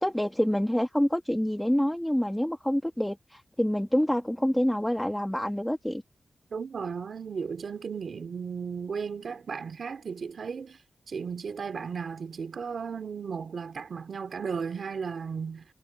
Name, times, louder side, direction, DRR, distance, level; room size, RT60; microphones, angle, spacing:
voice 1, 0.0-6.0, equal, 5° left, 1.4 m, -27 dB
voice 2, 6.5-10.8 11.1-15.6, right 6 dB, 65° right, 2.8 m, -35 dB
wide cardioid pair, 125°, 0 cm